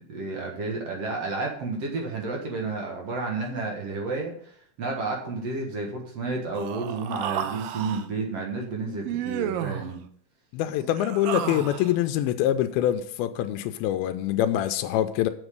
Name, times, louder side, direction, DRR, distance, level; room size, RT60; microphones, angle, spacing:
voice 1, 0.1-4.3 4.8-10.0, right 3 dB, 55° right, 0 dB, 2.0 m, -31 dB
Human voice, 6.5-8.1 9.1-9.9 10.8-12.0, right 10 dB, 80° right, 2.4 m, -32 dB
voice 2, 10.5-15.3, left 12 dB, 90° left, 9 dB, 2.4 m, -25 dB
7.3 x 7.1 x 6.6 m, 0.63 s
omnidirectional pair, 4.2 m